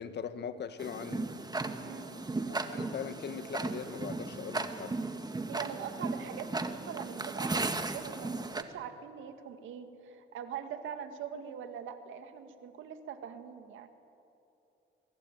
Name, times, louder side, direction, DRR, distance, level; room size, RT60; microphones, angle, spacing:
voice 1, 0.0-1.3 2.5-5.0, left 7 dB, 60° left, 11 dB, 1.5 m, -40 dB
Tick-tock, 0.8-8.6, right 3 dB, 20° right, 1.8 m, -36 dB
voice 2, 1.8-2.1 5.5-13.9, right 8 dB, 85° right, 8 dB, 2.1 m, -42 dB
23.5 x 22.5 x 9.3 m, 2.8 s
cardioid pair, 90°, 20 cm